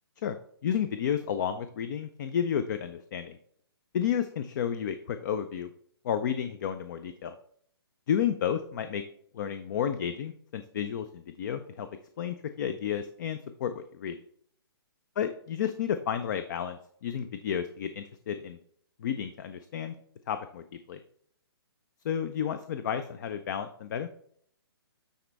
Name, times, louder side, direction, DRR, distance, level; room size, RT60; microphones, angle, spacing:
voice 1, 0.6-3.4 3.9-5.7 6.0-7.3 8.1-9.0 9.3-11.9 12.2-14.2 15.2-18.6 19.0-19.9 20.3-21.0 22.0-24.1, left 8 dB, 45° left, 10 dB, 0.5 m, -31 dB
9.3 x 4.2 x 3.4 m, 0.64 s
hypercardioid pair, 145°, 13 cm